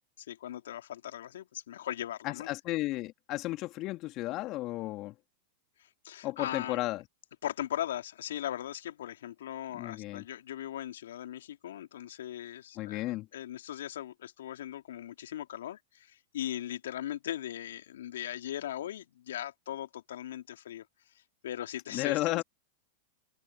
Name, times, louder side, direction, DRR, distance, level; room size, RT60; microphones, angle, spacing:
voice 1, 0.3-2.5 6.0-6.8 7.4-13.0 13.3-15.8 16.3-20.8 21.4-22.4, left 11 dB, 70° left, 3.1 m, -38 dB
voice 2, 2.2-5.1 6.2-7.0 9.7-10.2 12.8-13.3 21.9-22.4, left 18 dB, 45° left, 2.8 m, -33 dB
open air
hypercardioid pair, 100°, 0 cm